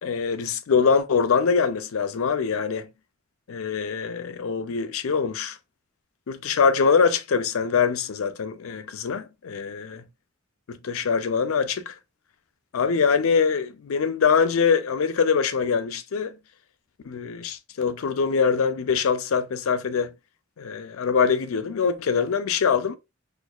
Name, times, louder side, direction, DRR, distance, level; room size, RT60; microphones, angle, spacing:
voice 1, 0.0-2.9 3.5-5.6 6.3-10.0 10.7-11.9 12.7-16.3 17.0-20.1 20.6-23.0, left 6 dB, 80° left, 0.4 m, -23 dB
4.4 x 2.3 x 2.3 m
head